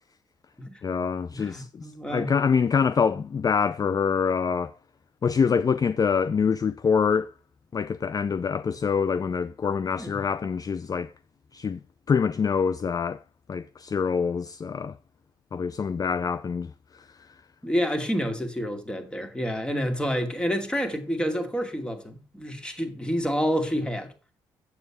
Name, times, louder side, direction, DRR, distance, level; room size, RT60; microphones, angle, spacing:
voice 1, 0.8-4.7 5.2-7.3 7.7-11.1 11.5-11.8 12.1-13.2 13.5-14.9 15.5-16.7, left 6 dB, 35° left, 0.5 m, -25 dB
voice 2, 1.3-2.3 10.0-10.2 17.6-24.1, equal, 10° left, 2.4 m, -28 dB
7.9 x 7.2 x 4.9 m
hypercardioid pair, 50°, 11 cm